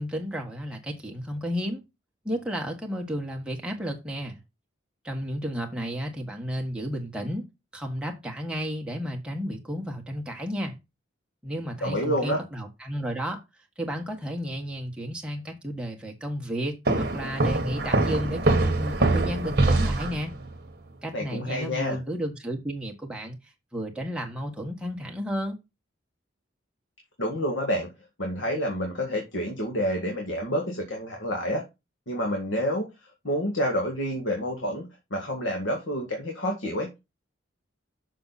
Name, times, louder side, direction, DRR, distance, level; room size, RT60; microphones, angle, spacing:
voice 1, 0.0-1.8 2.2-4.4 5.0-7.4 7.7-10.7 11.4-13.4 13.8-20.3 21.0-23.4 23.7-25.6, equal, 5° right, 1.6 m, -32 dB
voice 2, 11.8-12.4 21.1-22.0 27.2-27.9 28.2-31.6 32.1-32.9 33.2-37.1, equal, 75° left, 1.9 m, -28 dB
sound 1, 16.9-20.5, right 2 dB, 50° right, 1.4 m, -24 dB
6.8 x 6.1 x 4.1 m
head